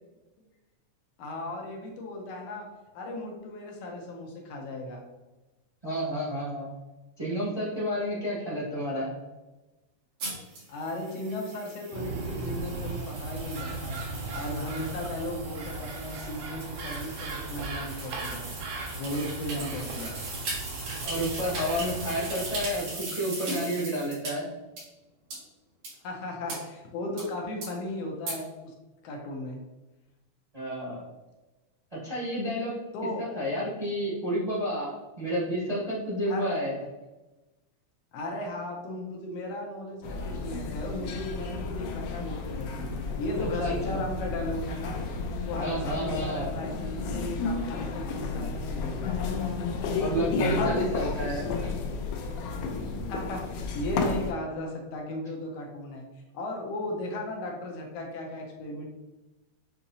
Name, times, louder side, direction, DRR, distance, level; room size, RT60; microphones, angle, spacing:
voice 1, 1.2-2.7 2.9-5.0 10.7-14.0 14.3-18.5 18.8-20.2 26.0-28.7 29.0-29.6 32.9-33.4 36.3-36.5 38.1-45.0 45.4-49.3 53.1-56.1 56.3-58.9, left 1 dB, 75° left, 0 dB, 1.6 m, -36 dB
voice 2, 5.8-6.7 7.2-9.1 21.0-24.5 30.5-31.0 32.0-32.7 33.2-36.8 43.6-44.0 45.6-46.5 50.0-51.7, equal, 25° right, -8 dB, 0.8 m, -30 dB
sound 1, 10.2-24.3 24.8-24.9 25.3-25.4 25.8-25.9 26.5-26.6 27.2-27.3 27.6-27.7 28.3-28.4, right 2 dB, 85° right, 3.2 m, -39 dB
sound 2, 11.9-22.9, right 3 dB, 70° right, 1.9 m, -37 dB
sound 3, 40.0-54.3, left 4 dB, 90° left, 2.1 m, -32 dB
6.9 x 2.8 x 2.7 m, 1.1 s
omnidirectional pair, 3.4 m